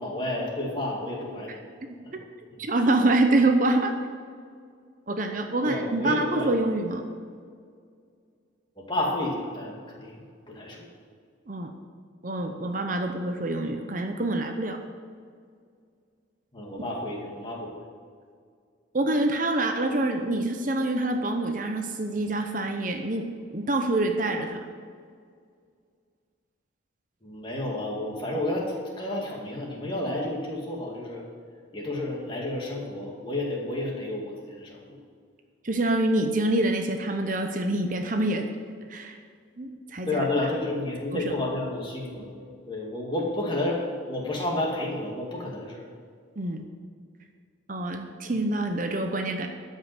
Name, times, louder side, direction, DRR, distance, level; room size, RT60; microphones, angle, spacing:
voice 1, 0.0-1.6 2.0-2.1 2.5-2.6 5.7-6.5 8.8-10.9 16.5-17.8 27.2-31.2 31.7-35.0 40.1-45.9, left 1 dB, 25° left, -2 dB, 2.1 m, -31 dB
voice 2, 2.6-3.9 5.1-7.1 11.5-11.7 12.2-14.8 18.9-23.3 23.5-24.7 35.6-38.5 38.9-39.2 39.6-40.2 41.1-41.2 46.4-46.7 47.7-49.5, right 2 dB, 40° right, 5 dB, 0.8 m, -26 dB
13.0 x 5.6 x 8.0 m, 2.1 s
head